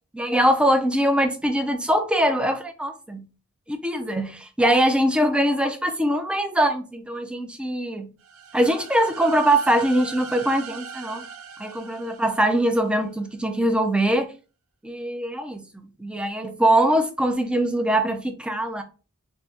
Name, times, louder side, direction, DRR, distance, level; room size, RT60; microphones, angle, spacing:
voice 1, 0.1-3.2 3.7-8.1 8.5-11.2 11.6-14.3 14.8-15.7 16.0-18.8, right 1 dB, 5° right, 0.4 m, -22 dB
sound 1, 8.2-13.1, right 6 dB, 85° right, 0.4 m, -40 dB
2.5 x 2.4 x 3.5 m
head